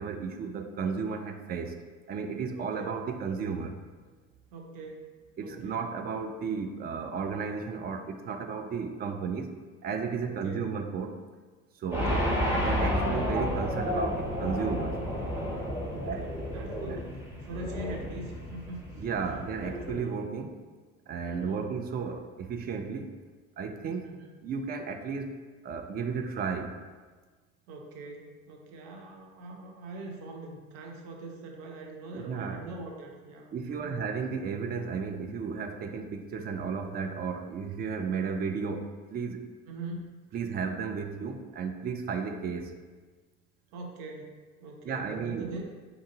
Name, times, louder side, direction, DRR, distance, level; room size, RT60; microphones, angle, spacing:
voice 1, 0.0-1.8 2.1-3.8 5.4-9.5 9.8-11.2 11.8-12.2 12.6-15.0 16.1-16.3 16.8-17.0 19.0-20.5 21.1-23.1 23.6-24.1 24.4-25.4 25.6-26.8 32.1-32.6 33.5-39.5 40.3-42.7 44.8-45.5, right 5 dB, 25° right, 6 dB, 0.3 m, -34 dB
voice 2, 2.6-2.9 4.5-5.1 5.4-5.8 10.3-10.6 11.9-12.3 15.9-17.1 17.4-18.8 19.6-19.8 21.2-21.6 24.0-24.3 27.7-34.0 39.7-40.1 43.7-44.3 44.6-45.7, right 2 dB, 60° right, 1 dB, 0.9 m, -43 dB
sound 1, 11.9-20.0, equal, 5° right, 1.2 m, -31 dB
4.7 x 2.6 x 3.7 m, 1.4 s
hypercardioid pair, 65°, 42 cm